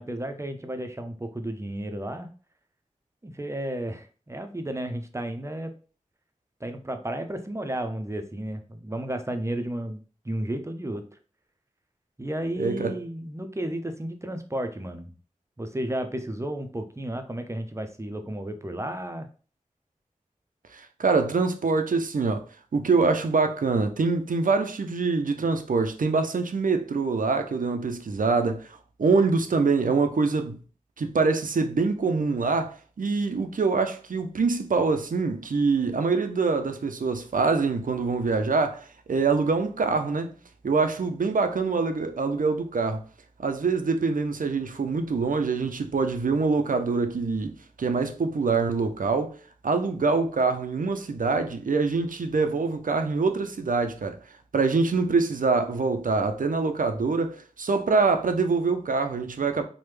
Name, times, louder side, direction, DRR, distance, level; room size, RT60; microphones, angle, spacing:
voice 1, 0.0-2.3 3.2-5.7 6.6-11.0 12.2-15.1 15.6-19.3, right 1 dB, 20° right, 0.4 m, -33 dB
voice 2, 12.6-13.0 20.7-22.4 22.7-30.6 31.0-40.3 40.6-43.0 43.4-47.5 47.8-49.4 49.6-54.2 54.5-59.6, right 4 dB, 85° right, 0.4 m, -25 dB
3.2 x 2.1 x 3.1 m
wide cardioid pair, 40°, 14 cm